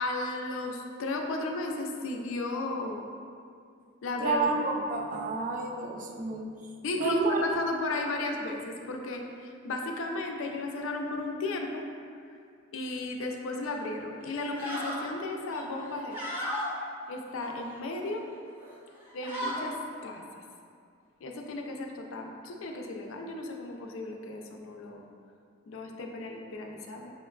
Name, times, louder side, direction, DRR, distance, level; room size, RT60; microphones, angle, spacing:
voice 1, 0.0-3.1 4.0-4.4 6.8-11.8 12.3-12.4 12.7-16.2 17.1-18.3 19.1-19.8 20.0-20.2 21.2-25.1 25.7-27.1, left 2 dB, 70° left, 2 dB, 0.4 m, -34 dB
voice 2, 4.2-6.5 7.0-7.5, right 3 dB, 40° right, 1 dB, 0.3 m, -30 dB
sound 1, 13.6-13.8 14.3-15.0 15.5-16.7 17.3-18.1 18.5-18.8 19.0-19.7, left 1 dB, 10° right, 0.7 m, -36 dB
6.1 x 2.2 x 2.3 m, 2.3 s
head